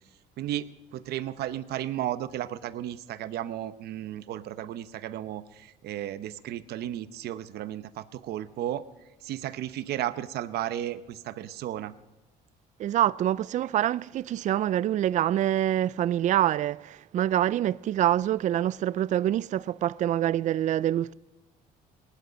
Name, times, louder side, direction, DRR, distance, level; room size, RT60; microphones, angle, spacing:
voice 1, 0.4-8.8 9.2-11.9, right 12 dB, 70° right, 0.8 m, -34 dB
voice 2, 12.8-21.1, right 12 dB, 45° right, 0.4 m, -26 dB
18.5 x 11.5 x 5.2 m
cardioid pair, 110°, 17 cm